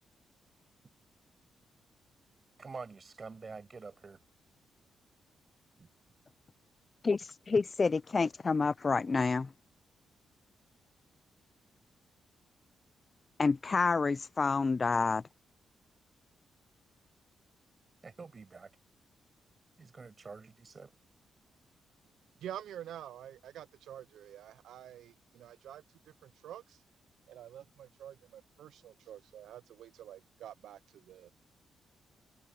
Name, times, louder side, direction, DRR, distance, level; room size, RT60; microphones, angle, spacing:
voice 1, 2.6-4.2 5.8-5.9 18.0-18.7 19.8-20.9, right 4 dB, 35° right, 6.6 m, -47 dB
voice 2, 7.0-9.5 13.4-15.2, left 4 dB, 30° left, 0.4 m, -28 dB
voice 3, 22.4-25.8 26.4-26.8 27.3-30.8 31.1-31.3, right 11 dB, 85° right, 0.4 m, -47 dB
cardioid pair, 115°, 0 cm